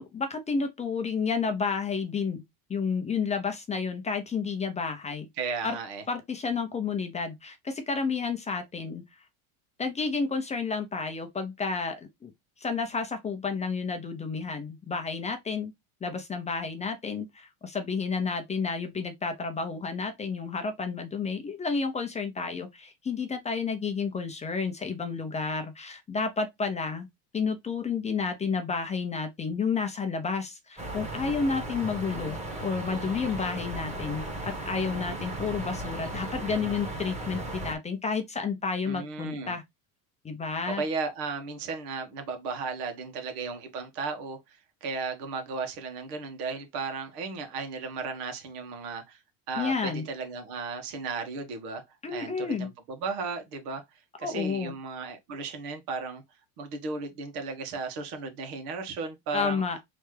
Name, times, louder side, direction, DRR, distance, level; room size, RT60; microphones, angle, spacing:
voice 1, 0.0-2.4 2.7-5.3 5.6-5.8 6.1-9.0 9.8-12.3 12.6-15.7 16.0-27.1 27.3-39.6 40.2-40.8 49.6-50.0 52.0-52.7 54.2-54.7 59.3-59.8, left 5 dB, 15° left, 0.6 m, -31 dB
voice 2, 5.4-6.0 38.8-39.6 40.7-49.2 49.5-51.8 52.1-53.8 54.2-56.2 56.6-59.6, right 4 dB, 80° right, 1.8 m, -35 dB
sound 1, 30.8-37.8, right 2 dB, 15° right, 1.3 m, -36 dB
4.1 x 3.5 x 3.2 m
cardioid pair, 145°, 44 cm